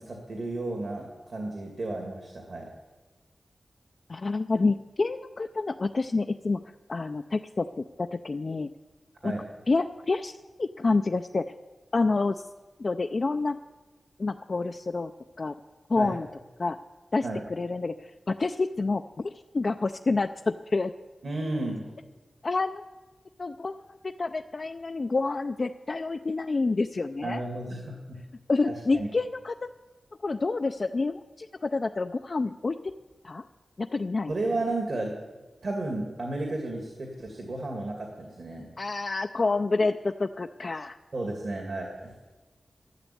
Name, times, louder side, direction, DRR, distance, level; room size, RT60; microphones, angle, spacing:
voice 1, 0.0-2.7 9.2-9.4 16.0-16.1 17.2-17.4 21.2-21.9 27.2-28.2 28.7-29.1 34.3-35.2 35.6-38.7 41.1-42.1, right 2 dB, 60° right, 1 dB, 2.4 m, -33 dB
voice 2, 4.1-8.7 9.2-9.3 9.7-10.3 10.6-11.5 11.9-12.4 12.8-13.6 14.2-15.1 15.4-15.6 15.9-16.3 16.6-16.8 17.1-20.9 22.4-22.8 23.4-27.4 28.5-29.5 30.2-32.9 33.2-33.4 33.8-34.3 38.8-41.0, left 3 dB, 45° left, 6 dB, 0.4 m, -28 dB
12.0 x 11.5 x 8.6 m, 1.2 s
wide cardioid pair, 115°, 0 cm